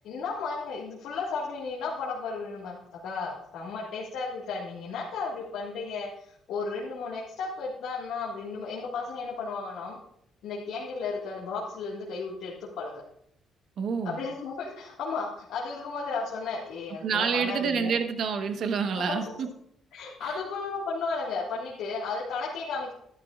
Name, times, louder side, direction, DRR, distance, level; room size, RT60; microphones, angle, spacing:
voice 1, 0.0-2.8 3.0-10.0 10.4-13.0 14.0-17.9 19.0-19.3 19.9-22.9, left 4 dB, 85° left, -5 dB, 1.8 m, -34 dB
voice 2, 13.8-14.2 17.0-19.5 20.2-20.4, right 6 dB, 65° right, 7 dB, 1.1 m, -28 dB
12.0 x 11.5 x 2.4 m, 0.71 s
cardioid pair, 90°, 0 cm